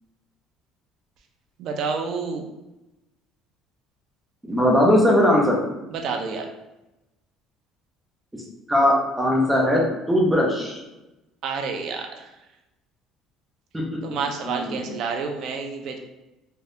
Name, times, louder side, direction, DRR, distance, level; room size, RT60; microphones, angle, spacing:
voice 1, 1.6-2.4 5.9-6.5 11.4-12.1 14.0-16.0, right 5 dB, 55° right, 3 dB, 0.4 m, -29 dB
voice 2, 4.5-5.6 8.7-9.8 10.1-10.8 13.7-13.8 14.4-14.8, left 1 dB, 5° right, -2 dB, 0.6 m, -19 dB
3.4 x 2.3 x 2.7 m, 0.96 s
cardioid pair, 155°, 0 cm